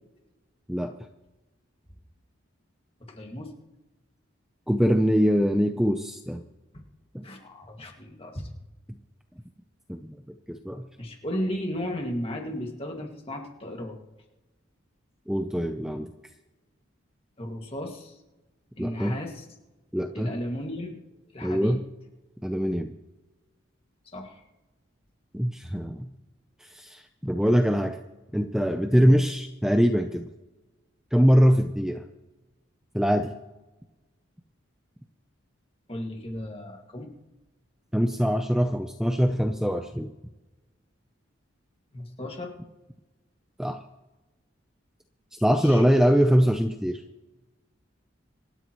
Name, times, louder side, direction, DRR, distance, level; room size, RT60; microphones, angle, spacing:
voice 1, 3.1-3.5 6.7-6.8 7.2-8.5 11.0-14.0 17.4-18.2 18.8-19.4 20.1-21.0 21.3-21.8 24.1-24.4 35.9-37.1 41.9-42.5 45.6-45.8, left 1 dB, 30° left, 2 dB, 2.1 m, -35 dB
voice 2, 4.7-6.4 7.1-7.3 9.9-10.2 10.5-10.8 15.3-16.1 18.8-19.2 19.9-20.3 21.4-21.8 22.4-22.9 25.3-26.1 26.6-28.0 28.3-30.3 31.1-32.1 32.9-33.3 37.9-40.1 43.6-43.8 45.3-47.0, equal, 5° right, 5 dB, 0.6 m, -23 dB
26.5 x 12.5 x 3.1 m, 1.1 s
head